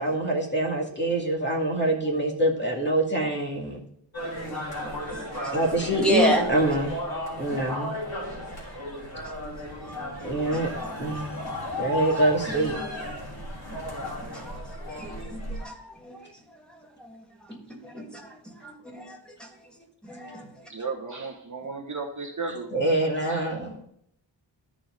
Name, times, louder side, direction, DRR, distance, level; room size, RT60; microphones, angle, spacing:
voice 1, 0.0-3.8 5.4-7.0 7.4-8.0 10.2-10.7 11.0-11.4 11.8-13.2 22.7-23.8, right 1 dB, 25° left, -1 dB, 2.2 m, -25 dB
sound 1, 4.1-15.6, left 1 dB, 50° left, 3.4 m, -35 dB
voice 2, 4.8-5.5 5.9-6.5 9.8-11.5 12.8-12.9 14.3-16.3 16.7-19.5 20.0-20.5, equal, ahead, -1 dB, 2.2 m, -32 dB
voice 3, 20.7-22.7 23.3-23.5, right 4 dB, 40° right, 1 dB, 1.3 m, -34 dB
13.5 x 5.0 x 3.8 m, 0.70 s
wide cardioid pair, 110°, 45 cm